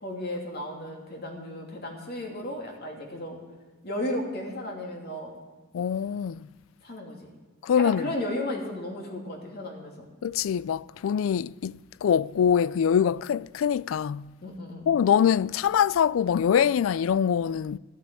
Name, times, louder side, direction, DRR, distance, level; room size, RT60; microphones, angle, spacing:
voice 1, 0.0-3.4 3.8-5.3 6.8-7.3 7.7-10.1 14.4-14.8, left 1 dB, 50° left, 2.7 m, -34 dB
voice 2, 5.7-6.5 7.6-8.0 10.2-14.3 14.9-17.8, left 8 dB, 85° left, 0.3 m, -24 dB
14.0 x 8.1 x 8.8 m
head